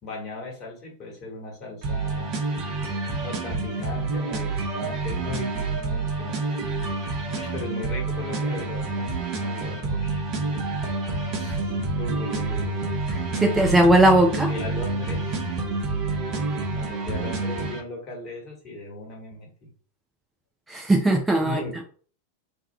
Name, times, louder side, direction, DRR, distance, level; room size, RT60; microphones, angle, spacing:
voice 1, 0.0-2.4 3.2-6.5 7.3-10.3 11.3-13.0 14.2-15.2 16.4-19.7 21.4-21.8, left 2 dB, 30° left, 0 dB, 1.4 m, -37 dB
sound 1, 1.8-17.8, right 3 dB, 40° right, 0.8 m, -28 dB
voice 2, 13.1-14.5 20.7-21.6, right 1 dB, 10° right, 2 dB, 0.4 m, -19 dB
2.7 x 2.3 x 3.3 m, 0.43 s
figure-of-eight pair, 90°, 0 cm